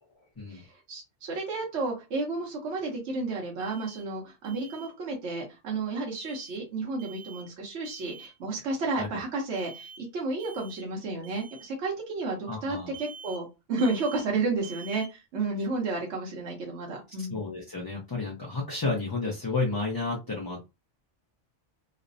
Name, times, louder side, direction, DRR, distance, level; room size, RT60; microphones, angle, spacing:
voice 1, 0.5-17.4, right 3 dB, 70° right, -1 dB, 1.1 m, -32 dB
Alarm, 3.6-4.0 4.4-4.9 6.1-6.6 7.0-7.5 7.8-8.3 9.5-10.0 10.4-10.9 11.2-11.7 12.9-13.4 13.8-14.3 14.6-15.1, right 5 dB, 35° right, 0.4 m, -47 dB
voice 2, 12.5-12.9 17.2-20.7, left 3 dB, 30° left, -4 dB, 0.4 m, -31 dB
3.1 x 2.1 x 2.5 m, 0.25 s
omnidirectional pair, 1.2 m